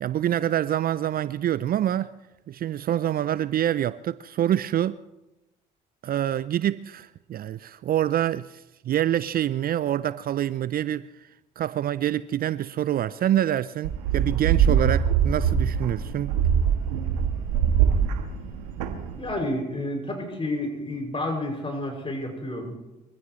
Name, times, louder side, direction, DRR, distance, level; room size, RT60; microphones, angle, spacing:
voice 1, 0.0-2.1 2.5-5.0 6.0-11.1 11.6-16.4, right 11 dB, 45° right, 0.5 m, -26 dB
sound 1, 13.8-19.3, right 8 dB, 85° right, 1.3 m, -23 dB
voice 2, 19.2-22.7, left 1 dB, 25° left, 6.4 m, -30 dB
23.5 x 15.5 x 3.2 m
hypercardioid pair, 60°, 21 cm